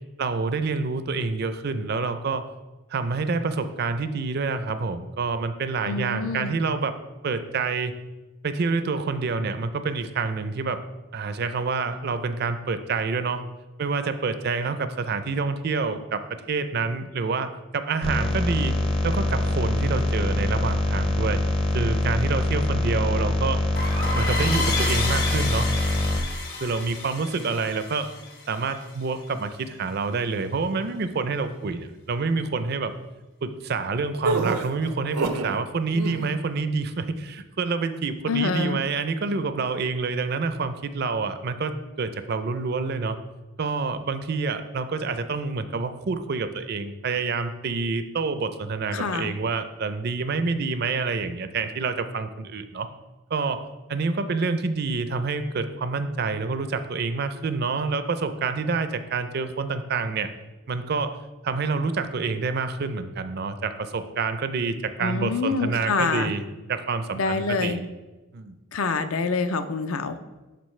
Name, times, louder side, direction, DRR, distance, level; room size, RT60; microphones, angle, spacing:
voice 1, 0.2-2.5 2.9-6.9 7.2-7.9 8.4-10.8 11.1-13.4 13.8-16.2 16.5-18.8 19.0-21.4 21.7-23.6 24.1-25.7 26.6-28.1 28.5-32.9 33.4-43.2 43.6-52.9 53.3-60.3 60.7-61.2 61.4-66.4 66.7-67.9 68.3-68.6, right 4 dB, 45° right, 10 dB, 0.4 m, -27 dB
voice 2, 5.8-6.6 38.3-38.8 48.9-49.3 65.0-66.3 67.1-67.8 68.7-70.2, left 4 dB, 70° left, 10 dB, 0.5 m, -26 dB
sound 1, 18.0-26.2, left 2 dB, 25° left, 0.6 m, -24 dB
sound 2, 23.7-29.1, left 3 dB, 45° left, 1.0 m, -31 dB
sound 3, 34.2-35.6 35.9-36.4, right 3 dB, 85° right, 0.6 m, -27 dB
11.0 x 3.9 x 3.2 m, 1.1 s
head